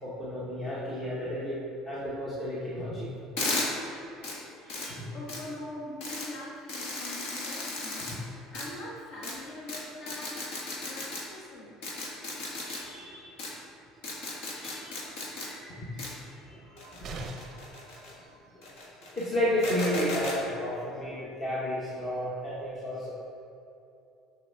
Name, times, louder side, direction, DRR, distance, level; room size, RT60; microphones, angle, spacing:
voice 1, 0.0-3.1 4.6-5.1 12.6-13.3 14.5-16.0 16.4-18.2 18.5-18.6 19.2-23.1, left 1 dB, 25° left, -8 dB, 1.2 m, -33 dB
sound 1, 3.4-3.7 4.2-4.3 4.7-4.9 5.3-5.4 6.0-6.3 6.7-8.1 8.5-8.7 9.2-9.3 9.7-9.8 10.1-11.2 11.8-12.8 13.4-13.5 14.0-15.5 16.0-16.1 16.8-18.1 18.6-19.3 19.6-20.4, left 2 dB, 75° left, 1.5 m, -35 dB
voice 2, 5.1-10.4 10.8-11.7, left 1 dB, 45° left, -5 dB, 1.5 m, -43 dB
sound 2, 17.0-17.8 19.7-19.8 20.1-20.2, right 5 dB, 35° right, 0.6 m, -42 dB
8.1 x 5.7 x 3.6 m, 2.8 s
cardioid pair, 155°, 0 cm